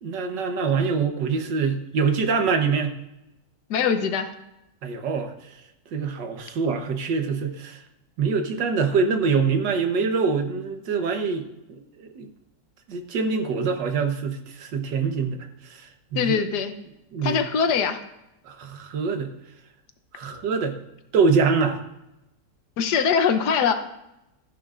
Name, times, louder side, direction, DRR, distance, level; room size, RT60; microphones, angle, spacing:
voice 1, 0.0-3.0 4.8-5.6 5.9-7.8 8.2-12.3 12.9-15.4 15.6-16.4 17.1-17.4 18.4-19.3 20.1-20.8 21.1-21.8, right 5 dB, 90° right, 6 dB, 1.7 m, -25 dB
voice 2, 3.7-4.3 16.1-16.7 17.2-18.0 22.8-23.7, left 6 dB, 70° left, 8 dB, 1.4 m, -22 dB
14.5 x 10.0 x 2.5 m, 0.90 s
omnidirectional pair, 1.8 m